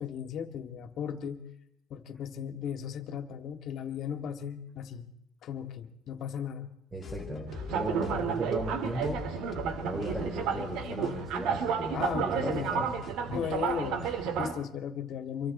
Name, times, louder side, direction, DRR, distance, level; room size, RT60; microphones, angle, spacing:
voice 1, 0.0-1.4 1.9-5.1 5.4-6.7 8.1-8.3 10.5-11.2 11.9-12.9 13.3-15.5, left 8 dB, 55° left, 8 dB, 2.0 m, -36 dB
voice 2, 6.9-9.2 9.8-12.9, right 1 dB, 10° right, 0 dB, 4.7 m, -36 dB
sound 1, 7.0-14.3, left 7 dB, 35° left, 2.1 m, -45 dB
sound 2, 7.5-14.5, right 7 dB, 70° right, 2.3 m, -32 dB
26.5 x 23.0 x 4.3 m, 0.81 s
cardioid pair, 125°, 0 cm